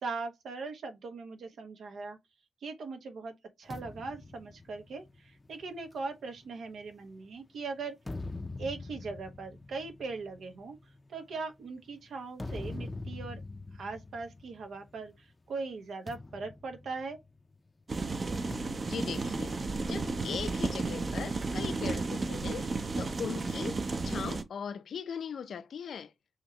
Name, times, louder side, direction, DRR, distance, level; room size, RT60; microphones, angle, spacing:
voice 1, 0.0-2.2 2.6-8.0 8.6-10.8 11.1-13.4 13.7-17.2, right 4 dB, 85° right, 1.1 m, -40 dB
sound 1, 3.7-7.3 7.8-15.2 15.5-15.7 16.1-17.7 18.5-20.3, left 2 dB, 25° left, 0.5 m, -44 dB
sound 2, 17.9-24.4, right 3 dB, 40° right, 0.7 m, -33 dB
voice 2, 18.8-19.6 19.8-26.1, left 7 dB, 80° left, 0.5 m, -39 dB
5.5 x 3.0 x 2.8 m
wide cardioid pair, 110°, 0 cm